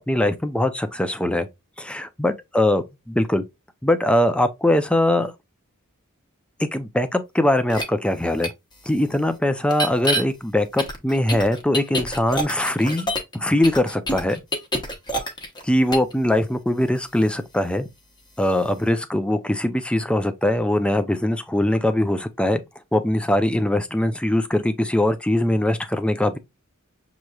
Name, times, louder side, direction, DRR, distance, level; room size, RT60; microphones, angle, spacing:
voice 1, 0.1-1.5 1.8-3.4 3.8-5.3 6.6-8.5 8.8-14.4 15.6-17.9 18.4-22.6 22.9-26.4, left 1 dB, 5° left, 0.5 m, -21 dB
sound 1, 7.7-7.8 8.4-8.5 9.7-10.2 10.8-13.4 13.6-15.6 15.9-16.1, equal, 20° left, 1.0 m, -26 dB
6.4 x 3.0 x 2.3 m
head